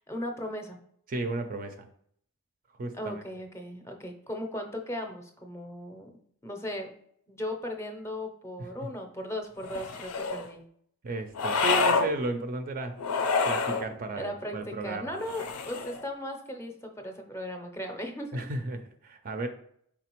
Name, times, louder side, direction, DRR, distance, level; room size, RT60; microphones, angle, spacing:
voice 1, 0.1-0.8 2.9-6.1 6.4-6.9 7.3-10.6 14.2-18.3, left 1 dB, 10° left, 4 dB, 0.6 m, -37 dB
voice 2, 1.1-1.9 2.8-3.2 11.0-13.0 13.4-15.2 18.3-19.5, right 2 dB, 40° right, 7 dB, 0.4 m, -34 dB
sound 1, 9.6-10.5 11.4-12.1 13.0-13.9 15.2-16.0, left 4 dB, 80° left, 0.5 m, -27 dB
4.8 x 3.6 x 3.0 m, 0.66 s
head